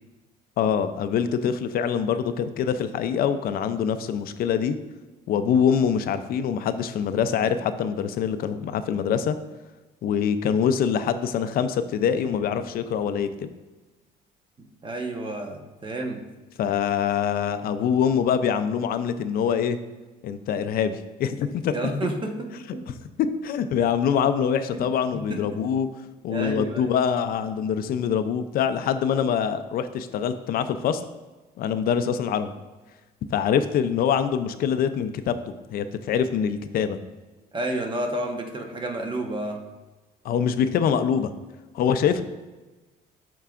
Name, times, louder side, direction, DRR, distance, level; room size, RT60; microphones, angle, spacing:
voice 1, 0.6-4.8 5.3-9.4 10.0-13.5 16.6-19.8 20.2-21.7 22.0-22.1 23.4-25.9 26.2-31.0 31.6-32.5 33.3-35.3 35.7-37.0 40.2-41.3 41.7-42.2, left 7 dB, 60° left, 10 dB, 0.5 m, -24 dB
voice 2, 14.8-16.2 21.7-22.5 22.7-22.8 24.7-24.8 25.3-25.4 26.3-26.9 37.5-39.6, right 1 dB, 30° right, 2 dB, 1.1 m, -30 dB
12.5 x 4.6 x 2.5 m, 1.2 s
cardioid pair, 110°, 17 cm